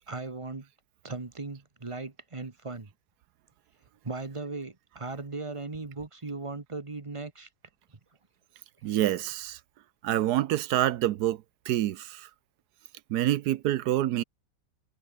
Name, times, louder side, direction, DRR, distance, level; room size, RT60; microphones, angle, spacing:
voice 1, 0.1-0.7 1.0-2.9 4.0-7.5 8.9-9.0, right 3 dB, 20° right, 1.1 m, -38 dB
voice 2, 8.8-9.6 10.0-11.4 11.7-12.3 13.1-14.2, right 13 dB, 70° right, 1.1 m, -27 dB
omnidirectional pair, 1.9 m